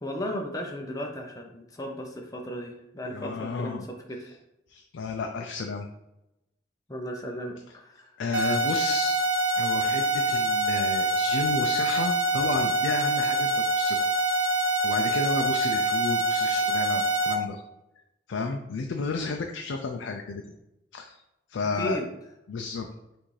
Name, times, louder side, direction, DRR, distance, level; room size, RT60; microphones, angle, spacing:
voice 1, 0.0-3.8 4.1-4.4 6.9-8.1 21.6-22.0, equal, 20° left, 2 dB, 0.6 m, -35 dB
voice 2, 3.1-3.9 4.7-5.9 8.2-9.2 9.6-14.1 14.8-17.6 18.3-20.4 20.9-21.2 21.5-22.0 22.5-22.9, left 4 dB, 75° left, 3 dB, 0.4 m, -32 dB
sound 1, 8.3-17.3, right 2 dB, 85° right, 1.0 m, -25 dB
5.7 x 2.6 x 3.2 m, 0.90 s
head